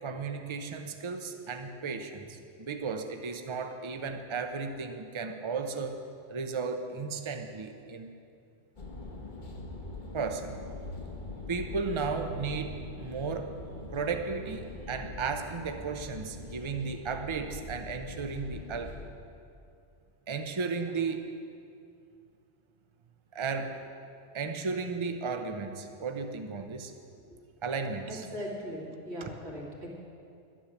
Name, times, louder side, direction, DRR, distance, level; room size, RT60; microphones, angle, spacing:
voice 1, 0.0-6.0 6.3-8.1 10.1-10.5 11.5-13.5 13.9-19.0 20.3-21.3 23.3-23.7 24.3-26.9 27.6-28.3, right 5 dB, 30° right, 6 dB, 0.7 m, -34 dB
sound 1, 8.8-19.1, left 2 dB, 45° left, 1.3 m, -43 dB
voice 2, 28.1-29.9, equal, 75° right, -3 dB, 2.7 m, -39 dB
11.0 x 10.0 x 7.2 m, 2.5 s
omnidirectional pair, 1.1 m